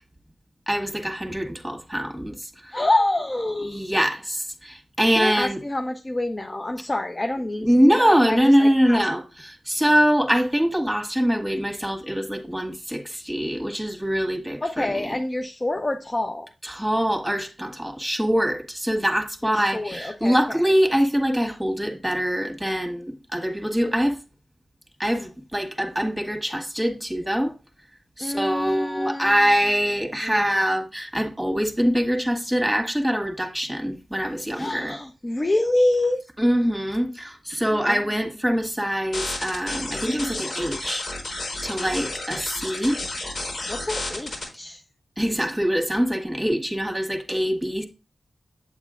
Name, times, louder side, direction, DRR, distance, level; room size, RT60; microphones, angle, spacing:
voice 1, 0.7-2.3 3.6-5.6 7.6-15.1 16.6-24.2 25.0-27.5 28.2-34.9 36.4-41.1 41.6-43.0 45.2-47.8, equal, ahead, 1.8 m, -23 dB
voice 2, 2.7-4.0 5.1-9.1 14.6-16.5 19.5-20.6 28.2-29.6 30.2-30.6 34.5-36.2 37.7-38.1 43.7-44.8, left 1 dB, 30° left, 0.7 m, -27 dB
sound 1, 39.1-44.4, left 2 dB, 75° left, 4.2 m, -31 dB
8.1 x 7.9 x 2.4 m
cardioid pair, 45°, 0 cm